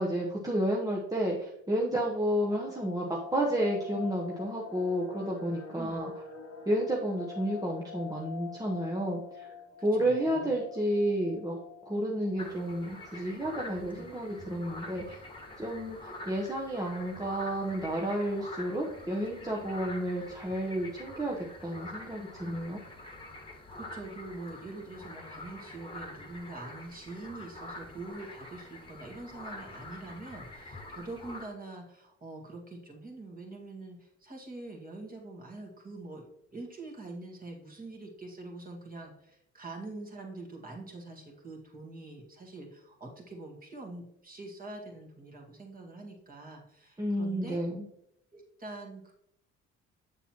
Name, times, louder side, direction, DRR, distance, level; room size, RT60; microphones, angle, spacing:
voice 1, 0.0-6.1 6.7-9.5 9.8-11.6 11.8-15.2 15.6-22.8 47.0-47.9, right 1 dB, 10° right, -3 dB, 1.0 m, -31 dB
sound 1, 2.2-13.0 13.3-13.4 13.7-13.9 14.4-14.8 15.3-15.4 15.6-16.1 16.4-16.5, left 6 dB, 55° left, 1.1 m, -46 dB
voice 2, 9.8-10.5 13.9-14.1 23.5-47.6 48.3-49.1, right 2 dB, 30° right, 0 dB, 2.0 m, -44 dB
sound 2, 12.4-31.4, left 2 dB, 15° left, 1.4 m, -46 dB
7.2 x 6.9 x 3.0 m, 0.78 s
cardioid pair, 90°, 30 cm